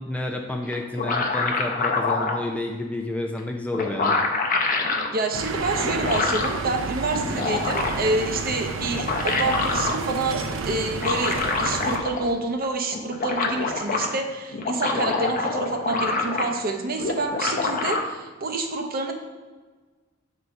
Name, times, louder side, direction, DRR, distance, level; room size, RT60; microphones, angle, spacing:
voice 1, 0.0-4.2, left 2 dB, 5° left, 2 dB, 0.4 m, -30 dB
sound 1, 0.7-2.4 3.4-3.5 3.7-5.1 5.8-6.6 7.1-8.1 8.8-10.0 10.9-12.3 12.6-12.7 12.9-14.1 14.5-16.7 17.0-18.0, left 3 dB, 45° left, 0.7 m, -26 dB
voice 2, 5.1-19.1, right 2 dB, 50° right, 4 dB, 0.7 m, -28 dB
sound 2, 5.3-12.0, right 4 dB, 85° right, 0.6 m, -31 dB
4.6 x 4.0 x 5.7 m, 1.3 s
head